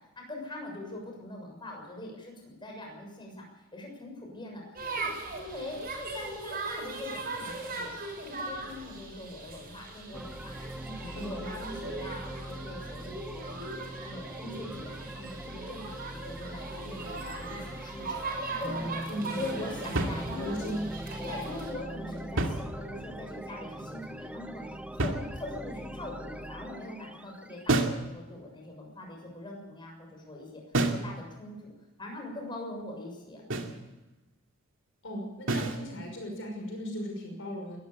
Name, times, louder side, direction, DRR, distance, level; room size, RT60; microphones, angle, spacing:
voice 1, 0.1-3.4 3.7-4.6 5.0-10.5 10.8-13.7 14.0-19.0 19.3-20.7 21.2-31.7 32.0-33.8, left 2 dB, 20° left, 0 dB, 6.7 m, -42 dB
sound 1, 4.8-21.7, right 3 dB, 40° right, 6.8 m, -39 dB
sound 2, 10.1-27.7, right 1 dB, 5° right, 0.9 m, -41 dB
voice 2, 11.1-11.6 19.1-19.4 19.8-19.9 20.3-20.8 35.0-37.8, equal, 60° left, 2 dB, 5.9 m, -37 dB
sound 3, 20.0-20.7 22.2-23.2 25.0-25.8 27.7-28.1 30.7-31.1 33.5-33.8 35.5-35.9, right 2 dB, 60° right, 2.4 m, -30 dB
22.0 x 14.0 x 8.5 m, 1.0 s
head